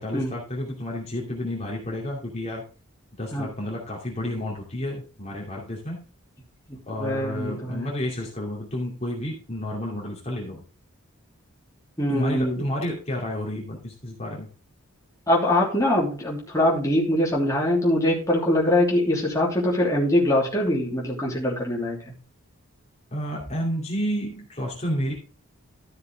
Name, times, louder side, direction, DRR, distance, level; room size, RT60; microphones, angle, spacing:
voice 1, 0.0-2.6 3.2-6.0 6.9-10.6 12.1-14.5 23.1-25.1, equal, 30° left, -3 dB, 2.6 m, -30 dB
voice 2, 6.7-7.9 12.0-12.6 15.3-22.1, left 1 dB, 15° left, -3 dB, 3.1 m, -23 dB
13.5 x 6.6 x 3.5 m, 0.36 s
head